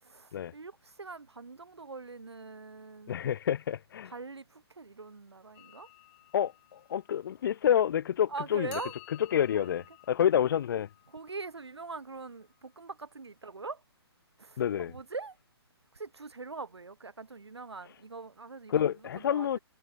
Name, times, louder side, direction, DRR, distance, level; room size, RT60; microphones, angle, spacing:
voice 1, 0.0-3.2 4.1-5.9 8.3-8.9 9.5-9.7 11.1-13.8 14.4-14.6 14.9-15.4 15.9-19.6, right 4 dB, 85° right, 4.2 m, -42 dB
voice 2, 3.1-4.1 6.3-8.8 9.3-10.9 14.6-14.9 18.7-19.6, left 9 dB, 55° left, 0.4 m, -28 dB
sound 1, 5.5-8.0 8.7-12.6, left 30 dB, 30° left, 7.8 m, -54 dB
hypercardioid pair, 140°, 14 cm